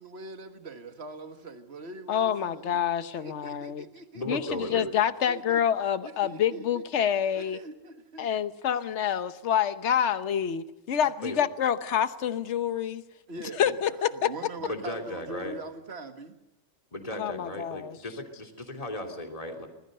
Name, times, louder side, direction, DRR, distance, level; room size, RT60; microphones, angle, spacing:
voice 1, 0.0-2.8 3.1-4.2 5.3-5.6 6.0-6.8 7.3-8.3 13.3-16.4, right 2 dB, 55° right, 7 dB, 2.0 m, -43 dB
voice 2, 2.1-3.8 4.3-7.6 8.2-13.0 13.6-14.3 17.2-18.0, left 9 dB, 60° left, 12 dB, 1.3 m, -27 dB
voice 3, 4.1-4.9 11.2-11.4 14.6-15.5 16.9-19.7, left 1 dB, 25° left, 3 dB, 3.3 m, -35 dB
25.5 x 20.5 x 6.7 m, 0.97 s
omnidirectional pair, 1.4 m